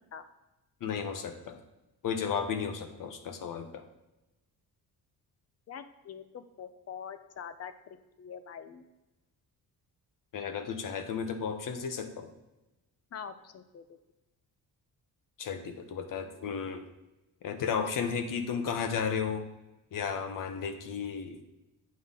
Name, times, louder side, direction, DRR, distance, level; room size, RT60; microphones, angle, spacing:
voice 1, 0.8-1.6 2.0-3.8 10.3-12.3 15.4-16.8 17.4-19.5 19.9-21.4, left 6 dB, 60° left, 7 dB, 1.0 m, -34 dB
voice 2, 5.7-8.9 13.1-13.8, left 7 dB, 40° left, 10 dB, 0.6 m, -44 dB
8.6 x 5.5 x 3.7 m, 1.0 s
cardioid pair, 140°, 37 cm